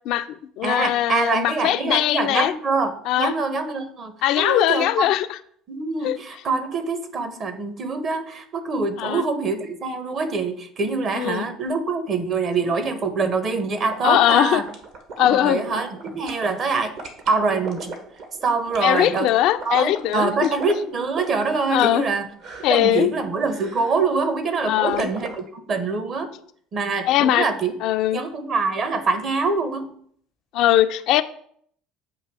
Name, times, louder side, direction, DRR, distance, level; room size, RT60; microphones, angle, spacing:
voice 1, 0.1-2.5 3.1-3.3 4.2-5.4 6.0-6.2 9.0-9.2 11.1-11.4 14.0-14.6 15.2-15.6 18.8-20.5 21.7-22.1 22.6-23.1 24.7-25.1 27.1-27.5 27.8-28.2 30.5-31.2, left 12 dB, 65° left, 10 dB, 0.4 m, -20 dB
voice 2, 0.6-5.1 5.7-14.7 15.2-16.9 17.3-17.9 18.4-19.3 19.6-22.3 22.7-26.3 26.7-27.7 28.1-29.9, right 4 dB, 45° right, 8 dB, 1.0 m, -25 dB
sound 1, 13.9-16.5 17.0-22.1 22.4-22.8 23.4-24.0 24.9-25.4, right 4 dB, 60° right, 1.3 m, -36 dB
7.6 x 2.8 x 4.7 m, 0.62 s
hypercardioid pair, 70°, 0 cm